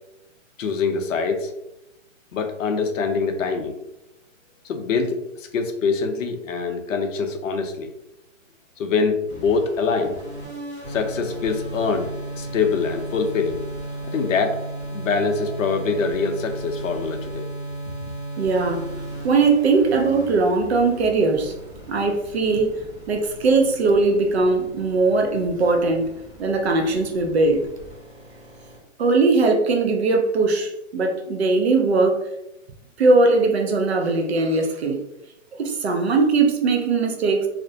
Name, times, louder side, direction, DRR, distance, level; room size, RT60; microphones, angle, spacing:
voice 1, 0.6-1.5 2.3-3.8 4.6-7.9 8.8-10.2 10.9-13.6 14.0-14.6 14.9-17.5, left 5 dB, 70° left, 5 dB, 0.6 m, -24 dB
sound 1, 9.3-28.8, right 1 dB, 10° left, 0.4 m, -36 dB
voice 2, 18.4-18.9 19.2-21.5 21.9-22.7 23.1-26.1 26.4-27.6 29.0-32.2 33.0-35.0 35.6-37.5, right 3 dB, 55° right, 3 dB, 0.5 m, -20 dB
2.5 x 2.1 x 2.6 m, 0.86 s
hypercardioid pair, 160°, 40 cm